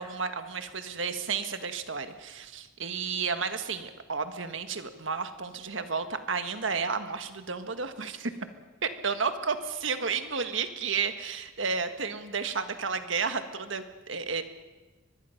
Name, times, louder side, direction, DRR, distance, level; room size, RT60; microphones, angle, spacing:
voice 1, 0.0-8.3 8.8-14.4, right 5 dB, 70° right, 9 dB, 1.6 m, -32 dB
23.5 x 21.0 x 5.8 m, 1.2 s
head